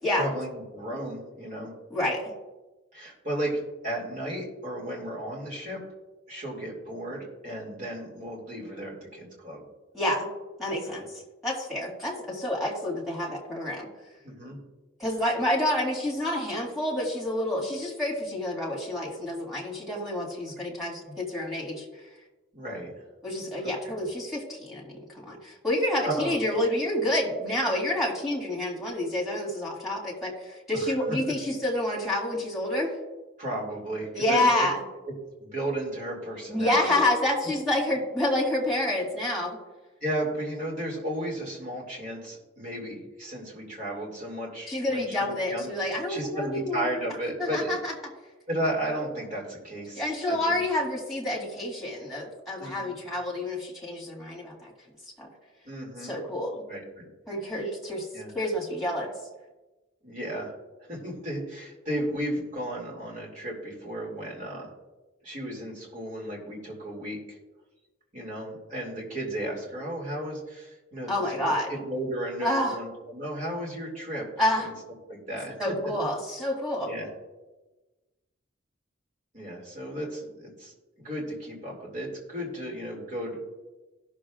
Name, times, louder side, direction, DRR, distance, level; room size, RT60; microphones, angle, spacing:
voice 1, 0.2-1.7 2.9-5.8 6.3-9.6 10.8-11.0 14.2-14.6 22.5-23.0 23.6-24.0 26.0-26.4 30.7-30.9 33.4-34.5 35.4-37.0 40.0-45.7 46.1-47.8 48.5-50.6 52.6-53.0 55.6-56.2 56.7-57.1 58.1-58.3 60.0-60.5 60.9-64.7 65.2-67.4 68.1-74.3 74.6-74.7 75.1-75.5 76.8-77.1 79.3-80.7 81.0-83.4, right 1 dB, 40° right, -3 dB, 2.6 m, -34 dB
voice 2, 1.9-2.2 9.9-10.3 10.6-11.1 11.4-13.9 15.0-21.8 23.2-30.3 30.7-32.9 34.1-34.8 36.5-39.6 44.7-47.0 47.4-47.9 50.0-54.7 55.2-55.3 56.0-56.6 57.3-58.1 58.3-59.1 71.1-71.7 72.4-72.8 74.4-74.7 75.6-76.9, left 1 dB, ahead, -4 dB, 2.3 m, -28 dB
17.5 x 6.6 x 2.5 m, 1.1 s
head